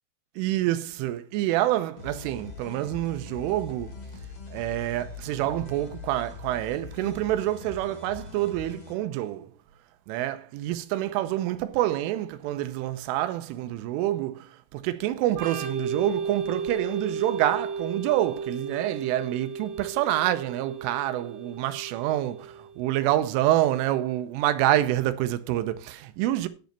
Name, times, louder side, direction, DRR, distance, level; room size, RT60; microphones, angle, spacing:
voice 1, 0.4-3.9 4.5-9.5 10.1-26.5, right 14 dB, 85° right, 3.3 m, -27 dB
sound 1, 2.0-8.9, left 5 dB, 60° left, 1.7 m, -42 dB
Organ, 15.3-22.8, right 5 dB, 45° right, 3.2 m, -34 dB
10.5 x 5.2 x 6.6 m
omnidirectional pair, 5.7 m